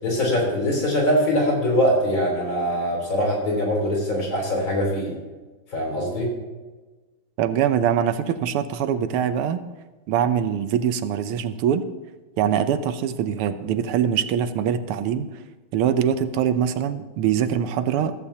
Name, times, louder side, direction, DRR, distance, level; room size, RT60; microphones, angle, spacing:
voice 1, 0.0-5.1 5.7-6.3, equal, 60° left, -1 dB, 4.3 m, -22 dB
voice 2, 7.4-9.6 10.1-11.8 12.4-15.3 15.7-18.1, right 9 dB, 85° right, 11 dB, 1.7 m, -23 dB
15.0 x 14.5 x 2.9 m, 1.2 s
omnidirectional pair, 2.4 m